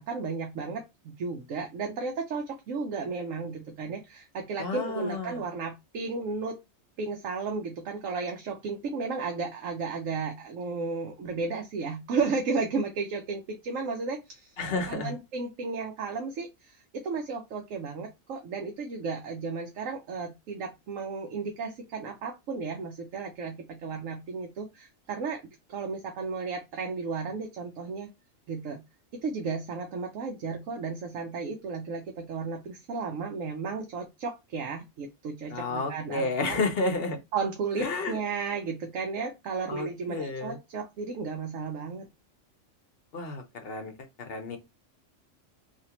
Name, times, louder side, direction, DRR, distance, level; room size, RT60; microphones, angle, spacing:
voice 1, 0.0-6.6 7.0-25.4 25.7-28.1 28.5-28.8 29.1-36.6 37.3-42.1, right 4 dB, 75° right, 1.1 m, -34 dB
voice 2, 4.6-5.4 14.6-15.1 35.5-37.2 37.8-38.2 39.7-40.6 43.1-43.9 44.2-44.6, left 3 dB, 55° left, 0.9 m, -31 dB
3.4 x 2.8 x 2.9 m
omnidirectional pair, 1.3 m